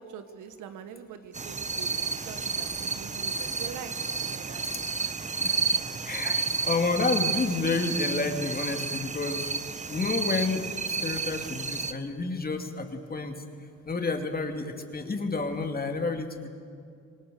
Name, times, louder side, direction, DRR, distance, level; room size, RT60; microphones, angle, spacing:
voice 1, 0.0-3.9 4.2-4.6 5.0-5.1 5.8-6.4, right 8 dB, 85° right, 10 dB, 1.5 m, -44 dB
sound 1, 1.3-11.9, right 4 dB, 25° right, 0.9 m, -31 dB
voice 2, 6.0-9.5 9.9-13.4 13.9-16.5, left 3 dB, 30° left, 5 dB, 2.5 m, -30 dB
26.0 x 19.5 x 6.9 m, 2.4 s
cardioid pair, 90°, 30 cm